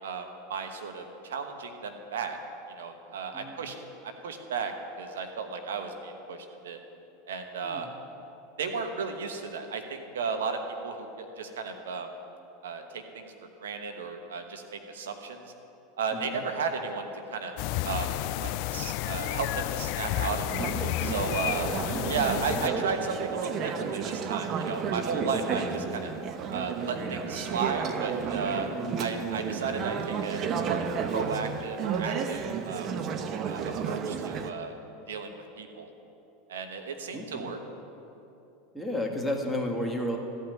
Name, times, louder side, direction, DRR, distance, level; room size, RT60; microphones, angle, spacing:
voice 1, 0.0-2.4 2.8-3.7 4.0-4.7 5.0-6.8 7.3-7.9 8.6-12.1 12.6-13.3 13.6-15.4 16.0-17.5 17.8-18.1 18.4-20.4 21.0-21.7 22.1-26.1 26.5-28.7 29.0-32.9 33.5-34.7 35.1-35.3 35.6-35.9 36.5-37.6, right 5 dB, 80° right, 6 dB, 1.2 m, -34 dB
voice 2, 3.3-3.6 7.6-7.9 16.1-16.5 22.4-22.7 25.1-25.4 28.5-28.7 37.1-37.5 38.7-40.2, left 1 dB, ahead, -1 dB, 1.8 m, -33 dB
sound 1, 17.6-22.7, left 15 dB, 60° left, 0.3 m, -31 dB
Conversation / Chatter, 20.5-34.5, right 6 dB, 40° right, 0.8 m, -32 dB
14.0 x 5.7 x 9.4 m, 2.9 s
hypercardioid pair, 95°, 0 cm